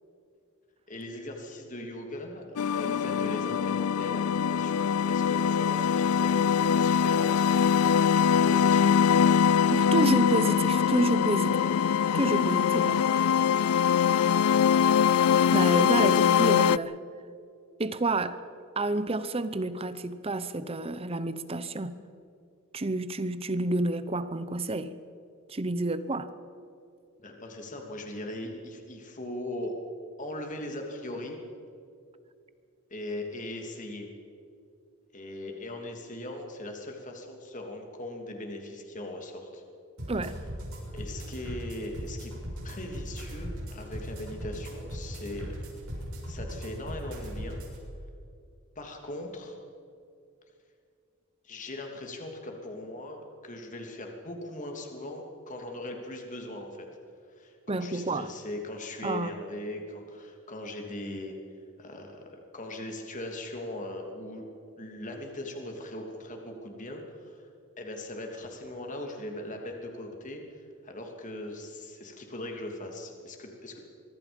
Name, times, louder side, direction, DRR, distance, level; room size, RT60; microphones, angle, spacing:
voice 1, 0.9-7.5 8.5-9.0 11.4-11.6 14.0-15.1 15.6-16.2 27.2-29.7 30.2-31.4 32.9-34.1 35.1-39.6 40.9-42.3 42.6-45.6 46.3-47.6 48.7-49.6 51.4-56.9 57.3-61.3 61.8-64.4 64.8-67.5 67.8-73.8, left 1 dB, 35° left, 3.0 m, -40 dB
sound 1, 2.6-16.8, left 8 dB, 75° left, 0.4 m, -23 dB
voice 2, 9.7-11.6 12.1-13.0 13.8-14.0 15.5-17.0 17.8-18.4 18.8-22.0 22.7-24.9 25.5-26.3 40.1-40.4 57.7-58.3 59.0-59.4, right 2 dB, 25° right, 0.8 m, -29 dB
sound 2, 40.0-47.8, equal, 70° right, 6.6 m, -38 dB
24.5 x 22.5 x 5.4 m
head